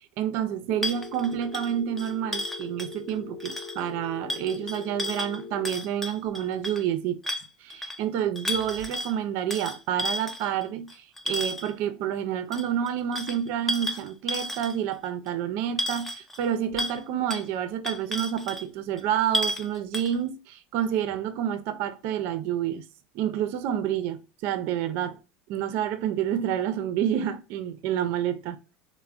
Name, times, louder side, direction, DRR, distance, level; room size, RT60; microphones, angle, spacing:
voice 1, 0.2-7.3 7.6-22.8 23.1-25.2 25.5-28.6, right 10 dB, 55° right, 0.4 m, -29 dB
Telephone, 0.7-5.7, left 4 dB, 60° left, 0.7 m, -41 dB
sound 1, 0.8-3.1 3.4-3.8 4.3-6.8 7.2-8.0 8.4-9.1 9.5-11.7 12.5-14.9 15.3-15.4 15.8-16.5 16.8-17.0 17.3-17.5 17.8-18.6 19.0-19.1 19.3-19.7 19.9-20.2, left 1 dB, 5° left, 0.4 m, -32 dB
3.2 x 2.1 x 2.4 m
supercardioid pair, 140°, 5 cm